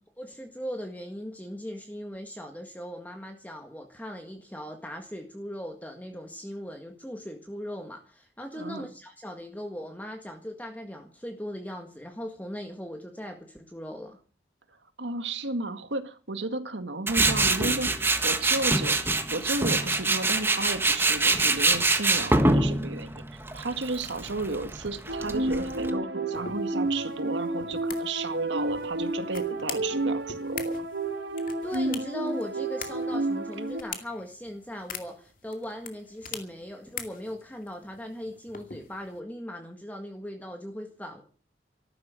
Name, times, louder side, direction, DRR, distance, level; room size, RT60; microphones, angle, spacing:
voice 1, 0.2-14.2 31.6-41.2, equal, 10° left, 4 dB, 1.7 m, -39 dB
voice 2, 8.5-8.9 15.0-19.0 19.3-30.9, right 2 dB, 90° right, 9 dB, 2.0 m, -33 dB
Tools, 17.1-25.9, right 2 dB, 10° right, 1.5 m, -25 dB
sound 1, 25.1-33.8, right 2 dB, 75° right, 1.9 m, -30 dB
OM-FR-pen-lid, 26.3-39.2, left 7 dB, 50° left, 2.4 m, -44 dB
14.5 x 12.0 x 7.6 m, 0.40 s
head